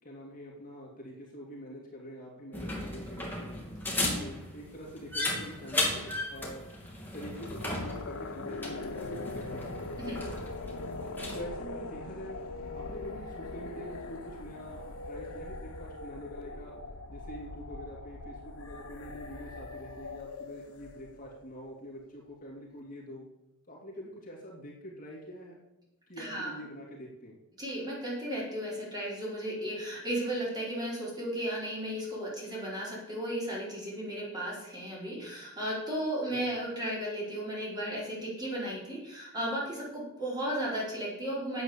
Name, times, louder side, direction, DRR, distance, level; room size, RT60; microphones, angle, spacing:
voice 1, 0.0-3.6 4.2-6.6 7.1-9.8 11.3-12.4 12.7-16.7 17.1-23.3 23.7-25.6 26.1-27.4 36.3-36.5, equal, 40° left, -3 dB, 2.6 m, -45 dB
sound 1, 2.5-11.4, left 2 dB, 10° left, 2.5 m, -36 dB
sound 2, 7.3-21.4, left 3 dB, 80° left, 1.0 m, -41 dB
voice 2, 26.2-26.5 27.6-41.6, right 1 dB, 20° right, -6 dB, 4.6 m, -35 dB
9.5 x 8.2 x 7.1 m, 0.92 s
head